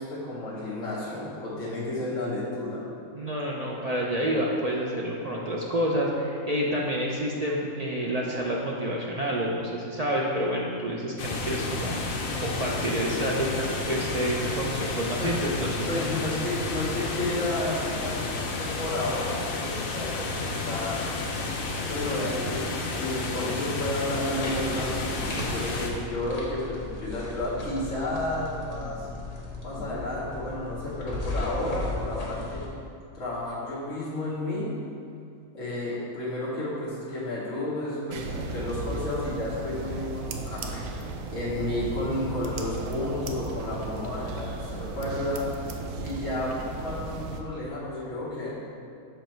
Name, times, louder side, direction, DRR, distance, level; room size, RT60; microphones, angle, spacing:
voice 1, 0.0-2.9 15.2-15.3 15.9-21.0 21.9-29.1 29.6-32.7 33.1-34.7 35.5-40.9 41.3-45.4 46.0-48.5, left 1 dB, 55° left, -9 dB, 1.6 m, -32 dB
voice 2, 3.1-12.1 12.4-16.0, equal, 50° right, -3 dB, 0.4 m, -28 dB
sound 1, 11.2-25.9, left 3 dB, 80° left, 1.2 m, -31 dB
sound 2, 24.3-32.7, left 2 dB, 30° left, 1.1 m, -36 dB
sound 3, 38.1-47.4, right 3 dB, 80° right, 1.0 m, -35 dB
6.4 x 5.1 x 4.4 m, 2.4 s
omnidirectional pair, 1.4 m